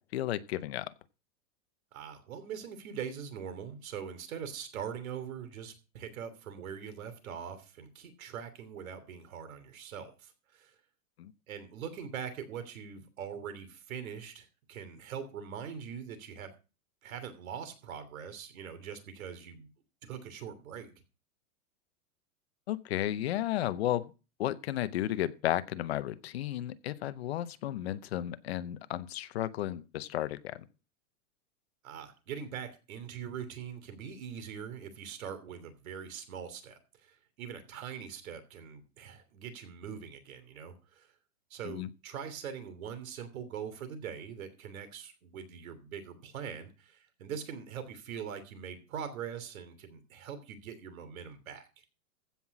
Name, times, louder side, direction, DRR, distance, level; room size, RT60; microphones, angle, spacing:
voice 1, 0.1-0.9 11.2-11.3 22.7-24.1 24.4-30.6 41.6-41.9, left 13 dB, 45° left, 0.7 m, -33 dB
voice 2, 1.9-10.7 11.5-16.5 17.0-19.7 20.0-20.9 31.8-41.1 41.5-51.9, right 7 dB, 65° right, 3.2 m, -42 dB
15.5 x 5.8 x 6.0 m
supercardioid pair, 175°, 44 cm